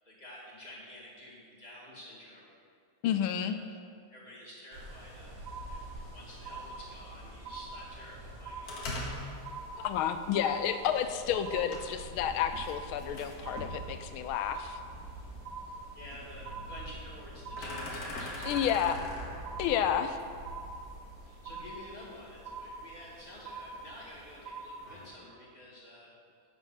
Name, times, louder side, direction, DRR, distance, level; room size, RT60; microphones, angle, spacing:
voice 1, 0.0-2.6 3.2-3.7 4.1-5.9 6.1-9.1 15.6-19.0 21.2-26.1, left 1 dB, 20° left, -6 dB, 1.8 m, -50 dB
voice 2, 3.0-3.6 9.8-14.8 18.5-19.0 19.6-20.2, left 9 dB, 85° left, 9 dB, 1.4 m, -30 dB
sound 1, 4.7-24.4, right 1 dB, 45° right, 2.0 m, -48 dB
sound 2, 5.5-6.1 6.5-7.1 7.5-8.1 8.5-9.1 9.5-10.1 10.5-11.1 11.5-12.1 12.5-13.1 13.5-14.1 14.5-15.1 15.5-16.1 16.5-17.1 17.4-18.1 18.4-19.1 19.5-20.1 20.5-21.1 21.5-22.1 22.5-23.1 23.5-24.1 24.5-25.1, right 5 dB, 65° right, 1.3 m, -44 dB
sound 3, 8.6-25.1, left 1 dB, 50° left, 1.6 m, -45 dB
8.2 x 7.0 x 5.8 m, 2.3 s
omnidirectional pair, 2.3 m